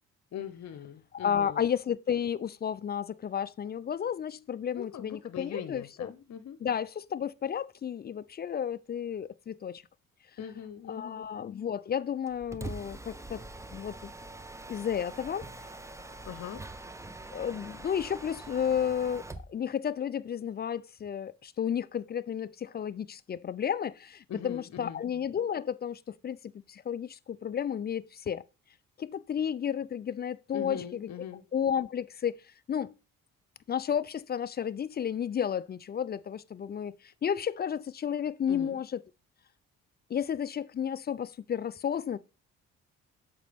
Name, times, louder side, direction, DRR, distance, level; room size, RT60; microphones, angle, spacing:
voice 1, 0.3-1.7 4.7-6.6 10.4-11.2 16.3-16.6 24.3-25.0 30.5-31.4 38.5-38.8, left 8 dB, 55° left, 0.9 m, -41 dB
voice 2, 1.1-6.1 6.6-9.8 10.9-13.4 13.7-14.1 14.7-15.5 17.3-26.4 26.7-28.4 29.0-31.1 31.5-32.4 32.7-32.9 33.7-36.9 37.2-39.0 40.1-42.2, left 8 dB, 30° left, 0.4 m, -32 dB
Mechanisms, 12.3-19.5, right 2 dB, 10° right, 0.7 m, -44 dB
7.4 x 5.1 x 3.5 m
supercardioid pair, 60°, 33 cm